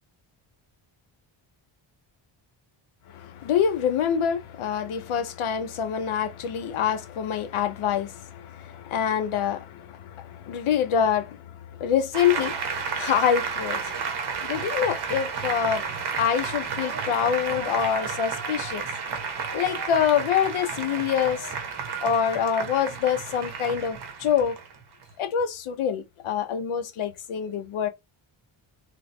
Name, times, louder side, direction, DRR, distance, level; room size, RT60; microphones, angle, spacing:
voice 1, 3.1-13.9 14.4-15.8 16.2-18.9 19.3-21.5 22.0-24.6 25.2-27.9, left 8 dB, 75° left, 0.9 m, -26 dB
Applause, 12.1-25.1, right 5 dB, 55° right, 1.0 m, -32 dB
3.3 x 2.9 x 3.2 m
wide cardioid pair, 155°, 49 cm